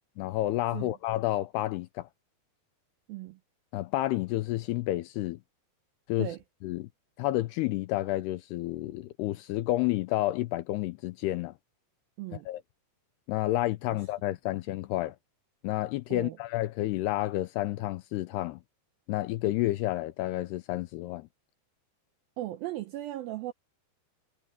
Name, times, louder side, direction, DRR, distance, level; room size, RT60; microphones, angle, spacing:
voice 1, 0.2-2.1 3.7-5.4 6.1-6.3 6.6-6.9 7.2-11.5 12.3-12.6 13.3-15.2 15.6-18.6 19.1-21.3, left 16 dB, 80° left, 2.5 m, -30 dB
voice 2, 12.2-12.5 16.1-16.4 22.4-23.5, right 14 dB, 80° right, 2.1 m, -37 dB
omnidirectional pair, 5.2 m